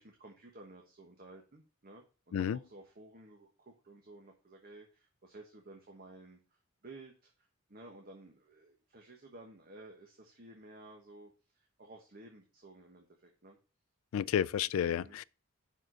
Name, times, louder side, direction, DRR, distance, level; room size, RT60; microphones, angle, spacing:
voice 1, 0.0-13.6 14.9-15.2, right 2 dB, 45° right, 1.2 m, -54 dB
voice 2, 14.1-15.2, left 9 dB, 70° left, 0.3 m, -31 dB
6.0 x 5.0 x 6.2 m
head